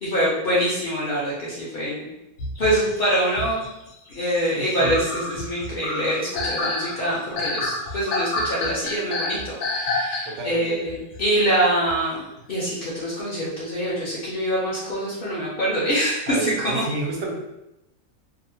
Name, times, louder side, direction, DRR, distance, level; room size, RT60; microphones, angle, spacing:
voice 1, 0.0-2.1 2.6-3.6 4.1-16.8, right 1 dB, 55° left, -7 dB, 0.6 m, -25 dB
sound 1, 2.4-10.6 10.9-11.2 11.9-12.0 12.4-12.6, left 2 dB, 75° left, 1.1 m, -29 dB
voice 2, 4.5-5.0 10.3-10.8 16.3-17.3, right 3 dB, 75° right, -1 dB, 1.0 m, -30 dB
2.7 x 2.0 x 2.6 m, 0.91 s
omnidirectional pair, 1.5 m